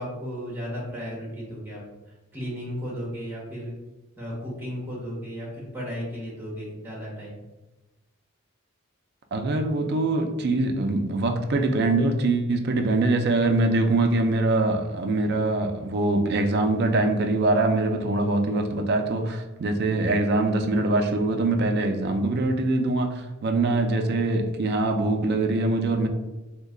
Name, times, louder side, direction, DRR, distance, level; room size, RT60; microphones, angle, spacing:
voice 1, 0.0-1.8 2.3-3.7 4.2-7.4, equal, 10° right, -4 dB, 1.0 m, -34 dB
voice 2, 9.3-26.1, right 2 dB, 45° right, 5 dB, 0.3 m, -23 dB
3.1 x 2.2 x 3.6 m, 1.1 s
head